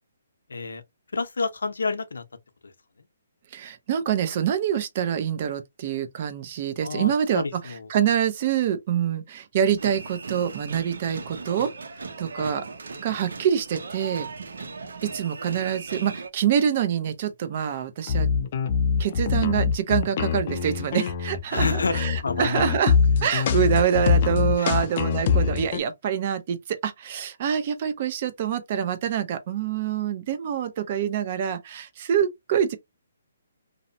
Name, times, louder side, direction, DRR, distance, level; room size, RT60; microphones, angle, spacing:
voice 1, 0.5-0.8 1.1-2.2 6.8-7.9 12.4-12.5 21.5-22.6 24.6-24.7, left 4 dB, 90° left, 0.6 m, -29 dB
voice 2, 3.5-11.7 12.2-12.7 13.0-14.3 15.0-18.3 19.0-32.8, right 9 dB, 35° right, 0.5 m, -26 dB
sound 1, 9.8-16.3, right 4 dB, 80° right, 0.6 m, -38 dB
sound 2, 18.1-25.8, left 6 dB, 35° left, 0.4 m, -23 dB
2.7 x 2.0 x 2.6 m
hypercardioid pair, 165°, 0 cm